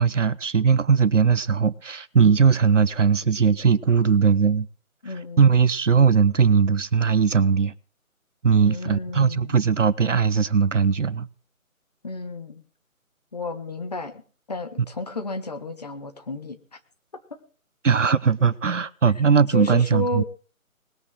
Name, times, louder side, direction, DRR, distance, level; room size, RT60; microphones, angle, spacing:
voice 1, 0.0-4.7 5.4-7.7 8.4-11.3 17.8-20.2, right 6 dB, 55° right, 0.8 m, -19 dB
voice 2, 5.0-5.6 8.6-9.6 12.0-12.6 13.3-14.2 14.5-16.6 19.1-20.2, left 2 dB, 30° left, 1.3 m, -32 dB
19.5 x 8.1 x 7.7 m
figure-of-eight pair, 160°, 43 cm